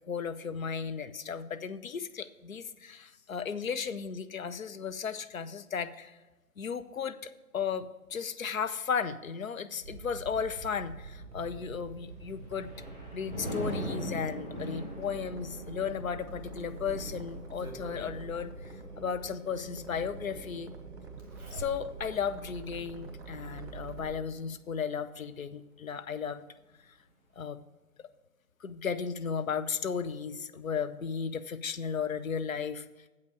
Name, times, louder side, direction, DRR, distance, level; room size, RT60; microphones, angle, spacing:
voice 1, 0.0-6.2 6.6-12.7 13.1-20.7 21.5-26.4 26.9-27.0 27.4-27.6 28.6-32.9, left 6 dB, 60° left, 12 dB, 0.7 m, -35 dB
sound 1, 9.8-24.2, right 4 dB, 50° right, 1.6 m, -46 dB
Thunder, 12.2-23.7 24.1-24.5, equal, 35° left, 3.1 m, -42 dB
Zipper (clothing), 16.3-18.0 19.5-19.6 21.2-22.2 22.6-22.7 23.4-24.3 25.5-25.6 25.9-26.0, right 2 dB, ahead, 0.8 m, -46 dB
8.0 x 5.6 x 6.6 m, 1.2 s
figure-of-eight pair, 155°, 45 cm